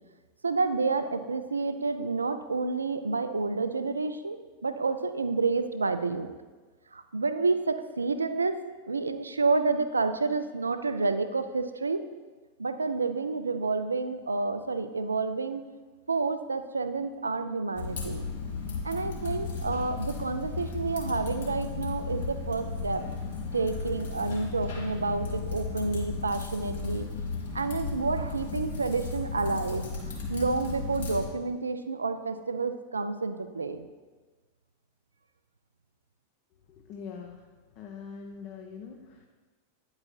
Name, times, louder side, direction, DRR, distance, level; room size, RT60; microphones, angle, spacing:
voice 1, 0.4-6.3 6.9-8.6 8.9-12.0 12.6-15.6 16.1-18.3 18.8-23.0 23.5-27.1 27.5-29.9 30.3-33.8, right 4 dB, 75° right, 10 dB, 0.3 m, -29 dB
Typing, 17.7-31.3, left 4 dB, 65° left, 1.4 m, -35 dB
voice 2, 36.7-37.5 37.8-39.2, left 6 dB, 40° left, 2 dB, 0.5 m, -43 dB
9.5 x 4.8 x 2.3 m, 1.3 s
figure-of-eight pair, 90°, 0 cm